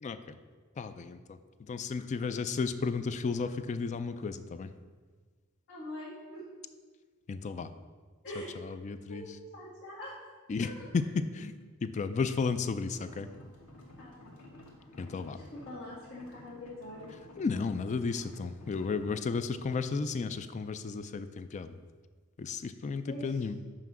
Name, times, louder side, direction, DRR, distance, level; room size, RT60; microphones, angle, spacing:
voice 1, 0.0-0.3 0.8-4.7 7.3-7.7 8.6-9.2 10.5-11.5 11.8-13.3 15.0-15.4 17.4-21.7 22.4-23.6, left 4 dB, 35° left, 11 dB, 0.3 m, -33 dB
voice 2, 5.7-6.4 8.2-8.5 9.1-10.1 14.0-14.3 15.0-17.1 23.1-23.4, left 1 dB, 60° left, -9 dB, 1.9 m, -44 dB
sound 1, 12.8-19.2, left 1 dB, 85° left, 1.2 m, -53 dB
5.8 x 4.9 x 6.1 m, 1.5 s
head